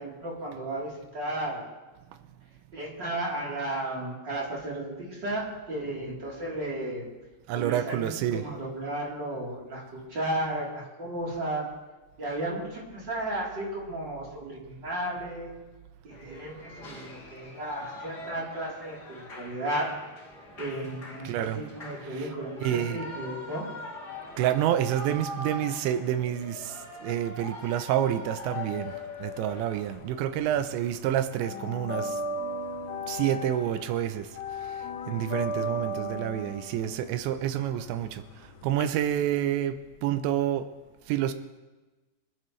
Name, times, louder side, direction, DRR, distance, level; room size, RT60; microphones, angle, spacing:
voice 1, 0.0-1.6 2.7-7.1 7.5-11.7 12.2-15.5 16.0-19.9 20.6-23.7, right 1 dB, 25° right, -5 dB, 3.7 m, -34 dB
voice 2, 7.5-8.4 21.2-21.6 22.1-22.2 22.6-23.1 24.4-28.9 29.2-32.2 33.1-34.3 34.6-38.2 38.6-40.7 41.1-41.3, right 11 dB, 90° right, 10 dB, 3.0 m, -28 dB
Shout / Cheering, 16.1-30.0, left 2 dB, 40° left, 1.6 m, -42 dB
sound 1, 29.5-30.7 30.9-38.8, left 1 dB, 75° left, 2.7 m, -35 dB
25.5 x 11.5 x 3.2 m, 1.2 s
omnidirectional pair, 5.1 m